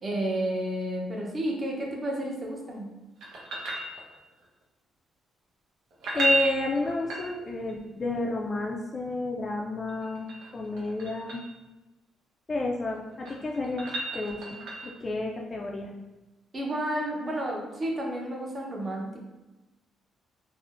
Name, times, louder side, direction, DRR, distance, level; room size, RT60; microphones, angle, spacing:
voice 1, 0.0-2.9 16.5-19.2, right 1 dB, 30° right, -1 dB, 0.7 m, -31 dB
sound 1, 3.2-4.4 5.9-7.7 9.9-11.5 12.9-15.0 17.8-17.9, right 2 dB, 80° right, 0.7 m, -32 dB
voice 2, 6.1-11.4 12.5-15.9, left 2 dB, 35° left, -1 dB, 0.3 m, -31 dB
3.5 x 2.0 x 2.4 m, 1.1 s
cardioid pair, 90°, 0 cm